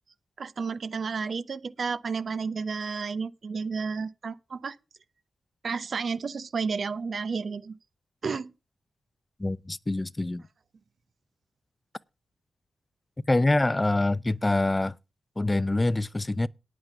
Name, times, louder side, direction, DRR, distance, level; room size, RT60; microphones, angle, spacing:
voice 1, 0.4-4.8 5.6-7.8 8.2-8.5, right 5 dB, 60° right, 0.8 m, -31 dB
voice 2, 9.4-10.5 13.3-15.0 15.4-16.5, left 2 dB, 25° left, 0.6 m, -25 dB
9.4 x 9.0 x 6.8 m
cardioid pair, 55°, 0 cm